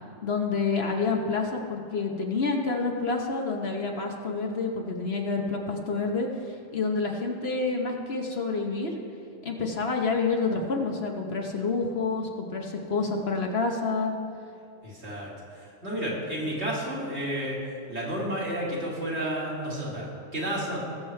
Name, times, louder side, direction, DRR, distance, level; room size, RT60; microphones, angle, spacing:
voice 1, 0.2-6.3 6.7-8.9 9.4-14.1, left 4 dB, 55° left, 2 dB, 1.2 m, -28 dB
voice 2, 14.8-17.6 17.9-20.8, right 1 dB, 60° right, -5 dB, 2.6 m, -31 dB
19.5 x 7.4 x 3.3 m, 2.5 s
omnidirectional pair, 1.3 m